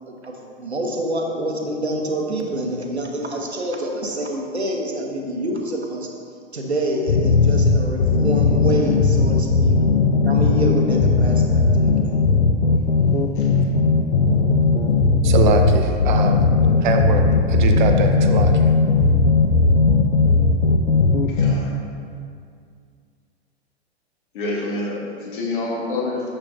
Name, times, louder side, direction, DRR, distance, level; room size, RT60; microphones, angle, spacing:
voice 1, 0.1-6.1 6.5-9.7 10.2-12.2, right 1 dB, 85° right, 1 dB, 0.9 m, -27 dB
sound 1, 7.1-21.5, left 4 dB, 85° left, 0.5 m, -17 dB
voice 2, 15.2-18.6, right 5 dB, 45° right, 5 dB, 0.6 m, -23 dB
voice 3, 21.3-21.7 24.3-26.2, left 2 dB, 50° left, -3 dB, 1.5 m, -27 dB
6.5 x 6.2 x 2.6 m, 2.2 s
figure-of-eight pair, 100°, 32 cm